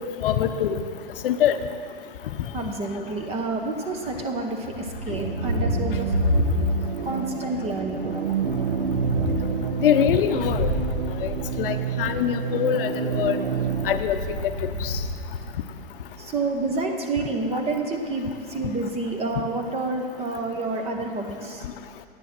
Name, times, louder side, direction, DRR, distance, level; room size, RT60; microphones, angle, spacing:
voice 1, 0.2-0.7 1.2-1.6 9.8-10.7 11.2-13.4 13.8-14.5 14.8-15.0, left 10 dB, 60° left, 9 dB, 0.7 m, -23 dB
voice 2, 2.5-6.1 7.0-8.1 16.2-21.7, right 3 dB, 20° right, 3 dB, 1.0 m, -29 dB
Thunder, 4.6-7.0 7.4-12.2 13.2-15.9, left 1 dB, 70° right, 2.8 m, -29 dB
sound 1, 5.1-14.0, right 7 dB, 90° right, 0.7 m, -29 dB
9.8 x 6.9 x 6.1 m, 2.2 s
hypercardioid pair, 125°, 30 cm